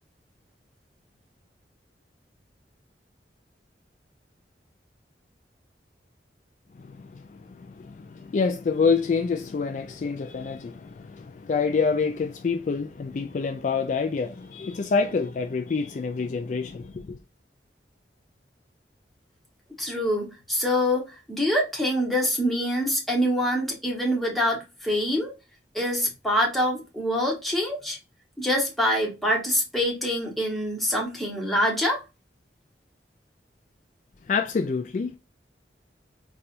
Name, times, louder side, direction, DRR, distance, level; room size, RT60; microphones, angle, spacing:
voice 1, 6.8-17.2 34.3-35.2, left 5 dB, 45° left, 0.3 m, -27 dB
voice 2, 19.8-25.3 25.7-28.0 28.4-32.0, equal, ahead, 1.1 m, -25 dB
4.2 x 2.4 x 2.4 m
head